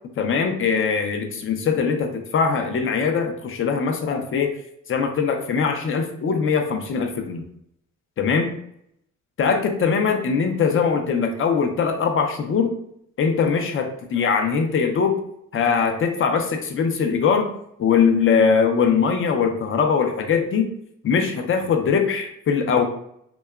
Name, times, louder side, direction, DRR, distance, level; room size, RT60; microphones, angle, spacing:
voice 1, 0.2-4.5 4.9-7.4 8.2-8.5 9.4-12.7 13.2-15.2 15.5-17.5 17.8-20.7 21.0-22.8, left 6 dB, 45° left, 5 dB, 0.5 m, -21 dB
2.8 x 2.2 x 2.2 m, 0.72 s
cardioid pair, 90°, 30 cm